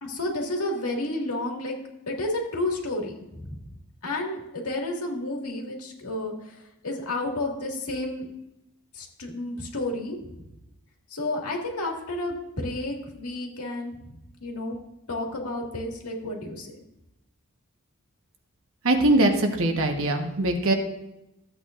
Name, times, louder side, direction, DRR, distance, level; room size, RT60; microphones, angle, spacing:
voice 1, 0.0-1.8 2.1-3.6 4.0-6.6 6.8-8.3 8.9-10.2 11.1-13.9 14.4-14.8 15.1-16.7, left 2 dB, 90° left, 0 dB, 2.0 m, -31 dB
voice 2, 18.8-20.7, right 1 dB, 65° right, 4 dB, 1.3 m, -22 dB
14.0 x 8.2 x 2.5 m, 0.90 s
head